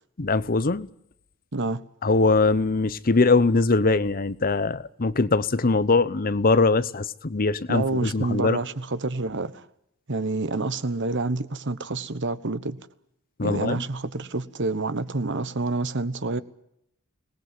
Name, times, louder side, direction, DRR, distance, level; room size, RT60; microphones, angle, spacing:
voice 1, 0.2-0.9 2.0-8.6 13.4-13.8, left 3 dB, 40° left, 0.8 m, -22 dB
voice 2, 7.7-9.6 10.1-12.8 13.4-16.4, right 3 dB, 55° right, 1.2 m, -28 dB
24.5 x 19.5 x 7.8 m
head